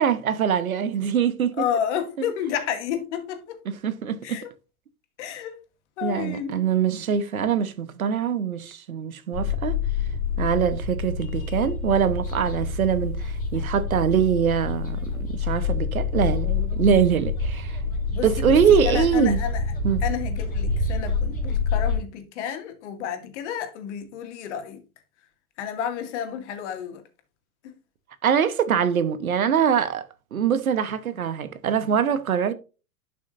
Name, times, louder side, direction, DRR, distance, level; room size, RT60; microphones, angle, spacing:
voice 1, 0.0-1.5 2.2-2.3 3.7-4.4 6.0-9.8 10.4-15.0 15.3-17.8 18.2-19.4 19.8-20.0 28.2-30.0 30.3-32.5, right 8 dB, 70° right, 1.1 m, -23 dB
voice 2, 1.6-3.6 4.2-4.5 5.2-5.6 6.0-6.7 18.1-19.7 20.0-24.8 25.6-27.0 27.6-27.8, left 9 dB, 55° left, 2.2 m, -31 dB
sound 1, 9.3-22.0, left 4 dB, 20° left, 3.3 m, -27 dB
11.0 x 5.7 x 2.5 m
figure-of-eight pair, 90°, 43 cm